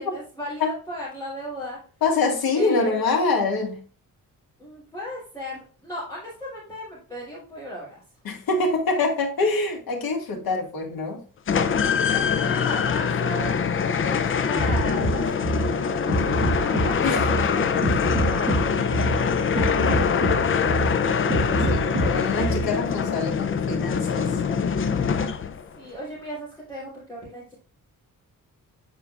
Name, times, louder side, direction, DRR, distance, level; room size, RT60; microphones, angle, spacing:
voice 1, 0.0-1.8 2.5-3.0 4.6-8.0 11.7-18.7 19.5-20.2 25.7-27.5, left 1 dB, 10° left, -11 dB, 3.1 m, -37 dB
voice 2, 2.0-3.8 8.2-11.2 17.0-17.2 20.8-21.0 21.3-24.4, left 3 dB, 80° left, 1 dB, 2.0 m, -25 dB
sound 1, 11.5-25.7, left 6 dB, 35° left, 0.5 m, -24 dB
sound 2, 14.6-22.6, right 2 dB, 35° right, 2.2 m, -26 dB
9.2 x 4.7 x 2.4 m, 0.39 s
wide cardioid pair, 155°, 35 cm